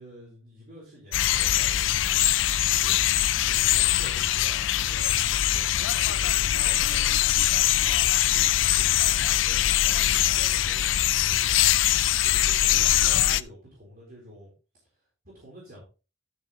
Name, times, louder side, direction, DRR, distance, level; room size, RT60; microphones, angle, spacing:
voice 1, 0.0-7.5 7.8-8.1 8.7-11.6 12.2-14.5 14.9-15.8, equal, 50° right, -4 dB, 4.0 m, -48 dB
sound 1, 1.1-13.4, left 13 dB, 70° left, 0.4 m, -22 dB
12.5 x 7.6 x 3.0 m, 0.31 s
head